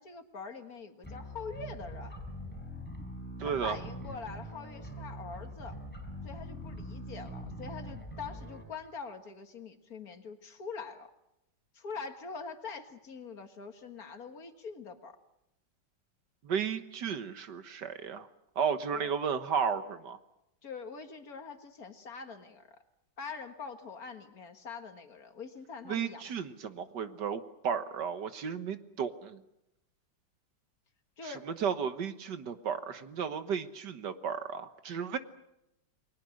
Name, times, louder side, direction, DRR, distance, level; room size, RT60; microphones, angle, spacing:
voice 1, 0.0-2.1 3.4-5.8 6.2-11.1 11.7-15.2 18.9-19.1 20.6-22.8 23.2-26.2 31.2-31.8, left 5 dB, 50° left, 7 dB, 2.1 m, -44 dB
sound 1, 1.0-8.6, equal, 5° left, 4.8 m, -43 dB
voice 2, 3.4-3.8 16.4-18.3 18.6-20.2 25.9-29.4 31.2-35.2, right 7 dB, 65° right, 10 dB, 1.8 m, -34 dB
29.5 x 21.0 x 6.5 m, 0.85 s
omnidirectional pair, 2.0 m